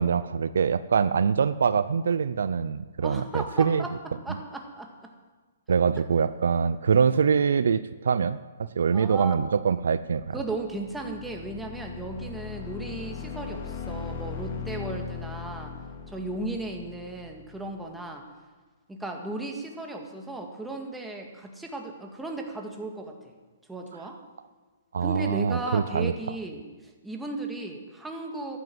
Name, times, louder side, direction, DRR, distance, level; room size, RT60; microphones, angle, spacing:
voice 1, 0.0-3.8 5.7-10.3 24.9-26.1, right 6 dB, 75° right, 14 dB, 0.6 m, -24 dB
voice 2, 3.0-3.9 4.2-5.1 5.9-6.0 7.0-7.2 8.6-9.4 10.3-15.7 16.1-18.2 18.9-23.3 23.7-24.2 25.0-28.6, right 2 dB, 5° right, 2 dB, 2.0 m, -36 dB
sound 1, 10.3-17.9, left 6 dB, 45° left, 3.0 m, -39 dB
14.5 x 11.0 x 7.8 m, 1.4 s
hypercardioid pair, 145°, 0 cm